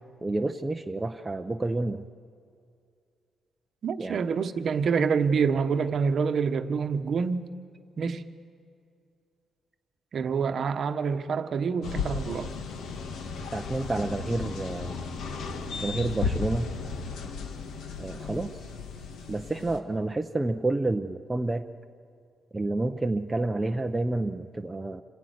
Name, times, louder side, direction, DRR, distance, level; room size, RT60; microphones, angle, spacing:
voice 1, 0.2-2.1 4.0-4.2 13.5-15.0 15.8-16.7 18.0-18.5 19.3-21.7 22.5-25.0, right 2 dB, 10° right, 0.6 m, -29 dB
voice 2, 3.8-7.5 8.0-8.2 10.1-12.5, right 5 dB, 45° right, 1.0 m, -27 dB
sound 1, 11.8-19.8, left 4 dB, 75° left, 1.8 m, -35 dB
27.5 x 17.0 x 9.4 m
cardioid pair, 165°, 0 cm